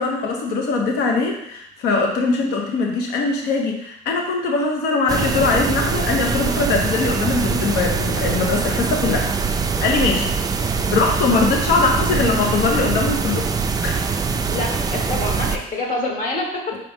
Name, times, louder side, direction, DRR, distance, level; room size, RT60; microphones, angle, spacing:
voice 1, 0.0-9.3 9.8-10.3 10.9-13.5 13.8-14.0 16.7-16.8, left 3 dB, 80° left, 1 dB, 0.9 m, -21 dB
sound 1, 5.1-15.6, right 5 dB, 20° right, 0.3 m, -23 dB
voice 2, 14.5-16.6, left 2 dB, 50° left, 0 dB, 1.2 m, -26 dB
5.0 x 3.0 x 3.5 m, 0.76 s
cardioid pair, 110°, 17 cm